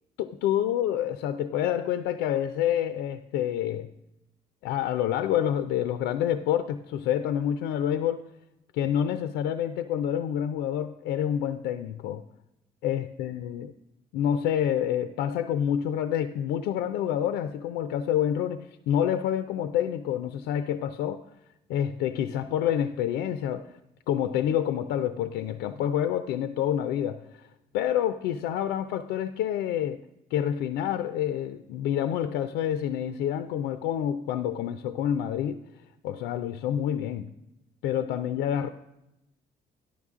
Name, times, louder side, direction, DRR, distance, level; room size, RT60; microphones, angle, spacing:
voice 1, 0.2-3.9 4.6-8.2 8.7-12.2 12.8-13.7 14.1-21.2 21.7-23.7 24.1-27.5 27.7-30.0 30.3-35.6 36.0-37.2 37.8-38.7, left 10 dB, 90° left, 0.5 m, -28 dB
13.5 x 11.0 x 3.6 m
cardioid pair, 110°, 17 cm